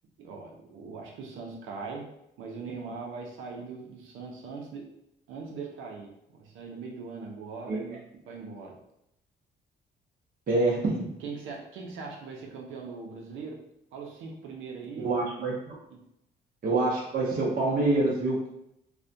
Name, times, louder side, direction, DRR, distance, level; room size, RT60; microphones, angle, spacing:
voice 1, 0.2-5.0 5.3-8.8 11.2-15.1 15.9-16.1, right 4 dB, 85° right, 0 dB, 0.5 m, -41 dB
voice 2, 10.5-11.1 15.0-15.7 16.6-18.5, right 2 dB, 45° right, -5 dB, 0.6 m, -26 dB
2.4 x 2.1 x 2.6 m, 0.79 s
cardioid pair, 90°, 20 cm